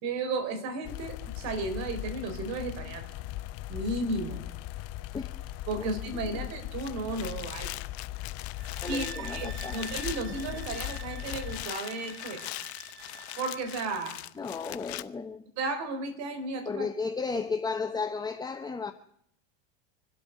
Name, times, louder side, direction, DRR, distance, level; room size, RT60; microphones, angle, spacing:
voice 1, 0.0-3.1 3.7-4.4 5.7-7.7 8.9-9.1 9.3-12.4 13.4-14.2 15.6-16.9, right 2 dB, 55° right, 8 dB, 3.9 m, -34 dB
sound 1, 0.8-11.7, left 15 dB, 50° left, 0.7 m, -39 dB
sound 2, 6.8-15.0, left 17 dB, 80° left, 0.9 m, -41 dB
sound 3, 8.6-14.0, right 7 dB, 35° right, 3.0 m, -47 dB
voice 2, 8.8-9.9 14.4-15.4 16.6-18.9, left 4 dB, 10° left, 7 dB, 0.9 m, -34 dB
25.5 x 8.5 x 6.6 m, 0.73 s
supercardioid pair, 105°, 32 cm